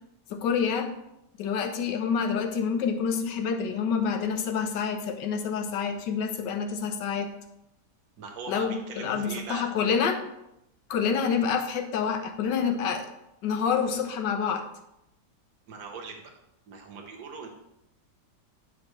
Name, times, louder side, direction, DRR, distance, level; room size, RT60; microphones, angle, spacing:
voice 1, 0.3-0.9 1.4-7.3 8.5-10.2 10.9-13.1 13.4-14.6, left 6 dB, 90° left, 6 dB, 1.4 m, -27 dB
voice 2, 8.2-9.6 15.7-16.2 16.7-17.5, right 5 dB, 60° right, 1 dB, 1.5 m, -40 dB
7.7 x 5.9 x 3.1 m, 0.85 s
omnidirectional pair, 1.8 m